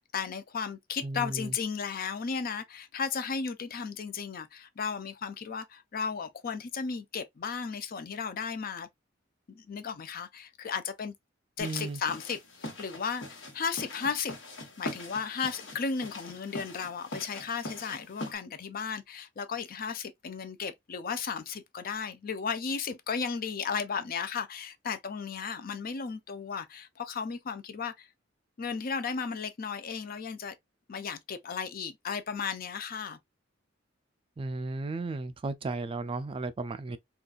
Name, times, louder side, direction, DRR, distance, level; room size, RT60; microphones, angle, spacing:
voice 1, 0.0-8.9 9.5-11.1 11.6-14.4 14.8-28.1 28.6-30.5 30.9-33.2, left 6 dB, 50° left, 0.5 m, -35 dB
voice 2, 1.0-1.6 11.6-12.0 34.4-37.0, right 3 dB, 30° right, 0.3 m, -34 dB
sound 1, 11.6-18.3, left 1 dB, 80° left, 1.3 m, -43 dB
3.8 x 2.4 x 2.4 m
head